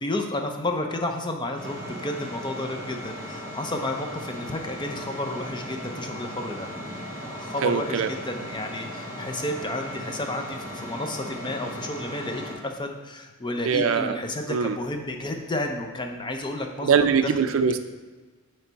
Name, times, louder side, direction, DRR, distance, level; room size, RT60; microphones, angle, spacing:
voice 1, 0.0-6.7 7.3-16.9 17.2-17.3, left 1 dB, 20° left, 4 dB, 0.5 m, -31 dB
sound 1, 1.6-12.5, equal, 30° right, 1.8 m, -37 dB
voice 2, 7.6-8.1 13.6-14.2 14.5-14.8 16.8-17.8, right 6 dB, 70° right, 9 dB, 0.4 m, -22 dB
9.0 x 3.3 x 4.0 m, 1.3 s
head